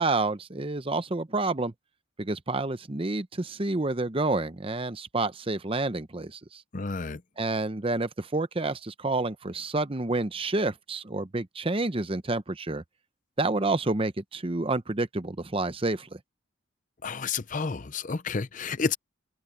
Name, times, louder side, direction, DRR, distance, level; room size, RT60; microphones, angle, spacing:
voice 1, 0.0-1.7 2.2-6.6 7.4-12.8 13.4-16.2, right 2 dB, 25° right, 0.7 m, -29 dB
voice 2, 6.7-7.2 17.0-19.0, left 4 dB, 40° left, 0.6 m, -30 dB
head